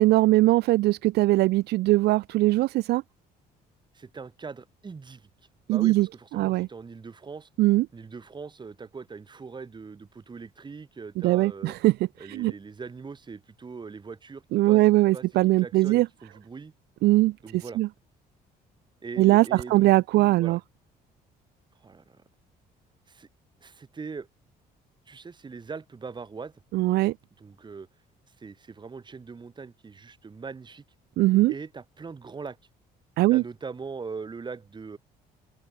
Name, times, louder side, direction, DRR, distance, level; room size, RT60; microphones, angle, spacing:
voice 1, 0.0-3.0 5.7-6.1 6.3-6.7 7.6-7.9 11.2-11.9 12.3-12.5 14.5-16.1 17.0-17.9 19.2-20.6 26.7-27.1 31.2-31.5 33.2-33.4, right 18 dB, 75° right, 0.6 m, -21 dB
voice 2, 3.9-5.3 5.7-7.5 7.9-11.8 12.2-14.8 15.1-15.3 15.6-16.7 17.4-17.8 19.0-20.6 21.8-22.2 23.1-23.3 23.6-24.3 25.1-26.5 27.4-27.9 28.4-30.8 31.5-32.6 33.3-35.0, right 4 dB, 25° right, 5.4 m, -41 dB
open air
cardioid pair, 110°, 17 cm